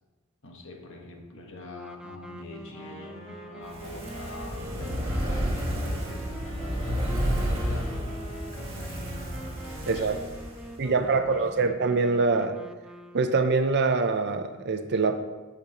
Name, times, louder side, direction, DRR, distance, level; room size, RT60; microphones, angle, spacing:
voice 1, 0.4-9.5 9.8-10.2 10.6-11.7, left 2 dB, 60° left, 1 dB, 1.3 m, -45 dB
sound 1, 1.7-13.6, equal, 5° right, 0.4 m, -45 dB
Wind instrument woodwind instrument, 2.6-10.6, equal, 30° left, 1.2 m, -46 dB
Fire, 3.6-11.0 11.3-11.4, equal, 25° right, 1.9 m, -31 dB
voice 2, 9.9-10.2 10.8-12.6 13.1-15.2, right 4 dB, 50° right, 7 dB, 0.6 m, -24 dB
15.0 x 5.3 x 3.0 m, 1.2 s
head